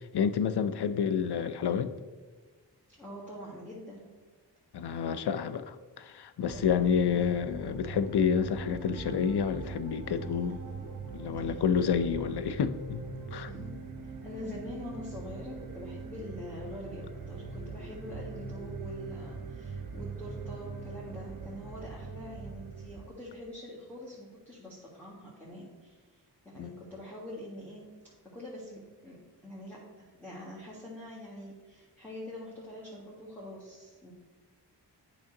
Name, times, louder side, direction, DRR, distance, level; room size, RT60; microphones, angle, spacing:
voice 1, 0.1-1.9 4.7-10.6 11.1-13.0 13.3-13.5 26.6-26.7, left 7 dB, 70° left, 0.6 m, -29 dB
voice 2, 3.0-4.1 6.5-7.3 11.4-11.6 13.5-13.7 14.0-27.8 28.2-34.1, left 1 dB, 5° left, 1.7 m, -45 dB
sound 1, 6.5-23.1, right 4 dB, 50° right, 0.9 m, -41 dB
8.6 x 5.5 x 3.8 m
wide cardioid pair, 60°, 41 cm